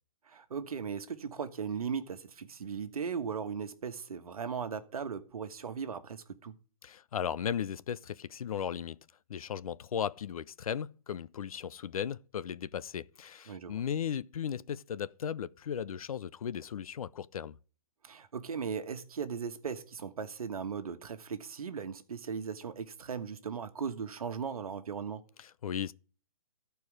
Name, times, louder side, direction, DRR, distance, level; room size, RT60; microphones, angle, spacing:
voice 1, 0.2-6.5 13.5-13.8 18.0-25.2, right 6 dB, 80° right, 1.3 m, -38 dB
voice 2, 6.8-9.0 9.3-17.6 25.4-25.9, left 8 dB, 75° left, 0.5 m, -36 dB
14.0 x 4.7 x 4.8 m
hypercardioid pair, 155°, 18 cm